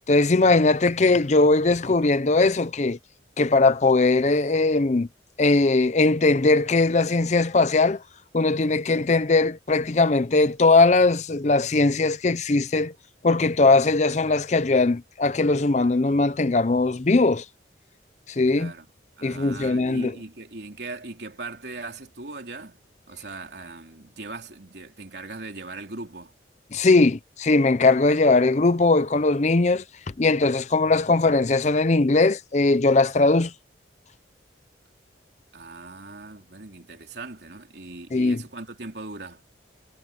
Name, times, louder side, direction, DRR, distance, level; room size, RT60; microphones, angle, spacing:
voice 1, 0.1-3.0 3.4-5.1 5.4-8.0 8.3-12.9 13.2-17.4 18.3-18.7 19.2-20.1 26.7-29.8 30.2-33.5 38.1-38.4, left 3 dB, 40° left, 0.6 m, -20 dB
voice 2, 18.5-18.9 19.2-22.8 23.1-26.3 35.5-39.4, right 3 dB, 65° right, 3.3 m, -39 dB
head